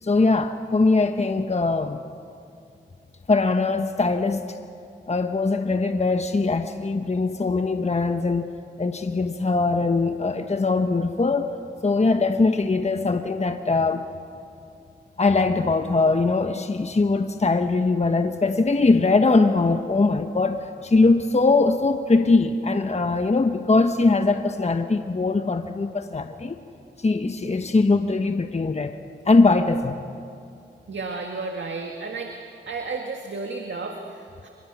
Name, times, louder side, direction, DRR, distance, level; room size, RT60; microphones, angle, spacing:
voice 1, 0.0-2.0 3.3-4.6 5.1-8.5 8.8-11.5 11.8-14.0 15.2-26.5 27.0-29.0 29.3-30.0, left 3 dB, 35° left, 7 dB, 1.1 m, -21 dB
voice 2, 30.9-32.4 32.7-34.5, right 3 dB, 65° right, 3 dB, 1.8 m, -32 dB
25.5 x 22.5 x 6.1 m, 2.5 s
cardioid pair, 45°, 20 cm